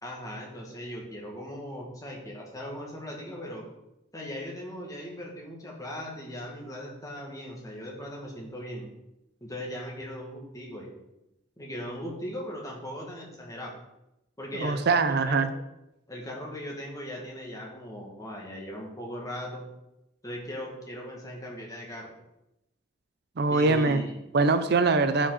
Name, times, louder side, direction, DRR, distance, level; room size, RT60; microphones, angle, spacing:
voice 1, 0.0-3.7 4.1-8.9 9.4-11.0 11.6-13.7 14.4-15.5 16.1-19.7 20.2-22.1 23.5-24.2, equal, 20° left, -1 dB, 2.0 m, -39 dB
voice 2, 14.5-15.5 23.4-24.0 24.3-25.3, right 3 dB, 60° right, 10 dB, 0.5 m, -23 dB
11.0 x 5.2 x 4.1 m, 0.88 s
head